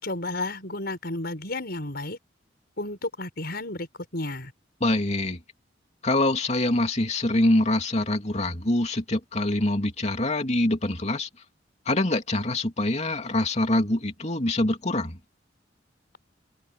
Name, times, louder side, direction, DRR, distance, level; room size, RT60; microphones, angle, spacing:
voice 1, 0.0-2.2 2.8-3.9 4.1-4.5, left 2 dB, 60° left, 6.3 m, -32 dB
voice 2, 4.8-5.4 6.0-11.3 11.9-15.2, left 1 dB, 40° left, 2.9 m, -24 dB
head